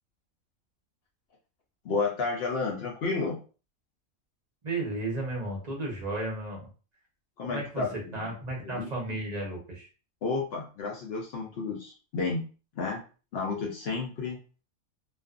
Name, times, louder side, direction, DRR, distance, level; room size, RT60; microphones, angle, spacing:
voice 1, 1.8-3.4 7.4-8.3 8.6-8.9 10.2-12.4 12.7-13.0 13.3-14.4, left 4 dB, 70° left, 0 dB, 0.6 m, -31 dB
voice 2, 4.6-6.7 7.4-9.9, right 2 dB, 40° right, -2 dB, 0.6 m, -34 dB
2.4 x 2.3 x 2.4 m, 0.35 s
omnidirectional pair, 1.5 m